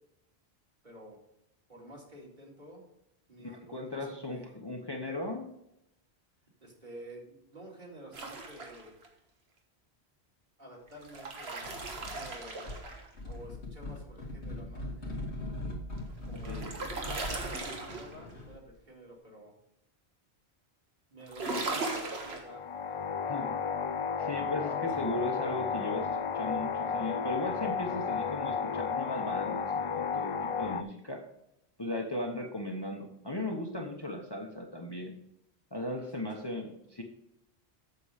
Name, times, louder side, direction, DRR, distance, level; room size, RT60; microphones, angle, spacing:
voice 1, 0.8-1.2 1.7-2.9 3.3-4.5 6.6-9.0 10.6-12.8 13.2-15.3 16.3-19.5 21.1-23.1 36.0-36.4, right 1 dB, 45° right, -2 dB, 2.7 m, -50 dB
voice 2, 3.4-5.5 16.5-16.7 23.3-23.6 24.2-31.2 31.8-35.1 35.7-37.0, left 2 dB, 25° left, 1 dB, 1.0 m, -37 dB
sound 1, 8.1-9.1 10.9-13.3 16.0-18.3 21.2-22.5, right 3 dB, 70° right, 1.7 m, -38 dB
sound 2, 11.6-12.3 12.7-18.7, left 1 dB, 85° left, 2.2 m, -41 dB
sound 3, 22.5-30.8, left 6 dB, 50° left, 0.4 m, -33 dB
8.4 x 7.0 x 5.0 m, 0.80 s
omnidirectional pair, 1.1 m